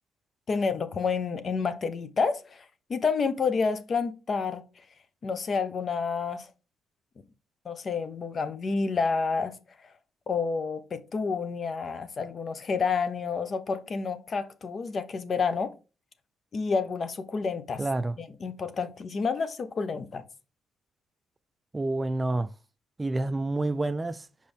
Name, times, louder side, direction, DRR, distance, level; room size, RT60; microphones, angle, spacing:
voice 1, 0.5-2.6 2.9-4.6 5.2-6.5 7.6-9.6 10.3-15.7 16.5-17.8 18.2-20.2, left 5 dB, 45° left, 0.9 m, -29 dB
voice 2, 17.8-18.2 21.7-22.5 23.0-24.3, right 2 dB, 20° right, 0.4 m, -28 dB
5.3 x 5.1 x 4.4 m
cardioid pair, 90°, 0 cm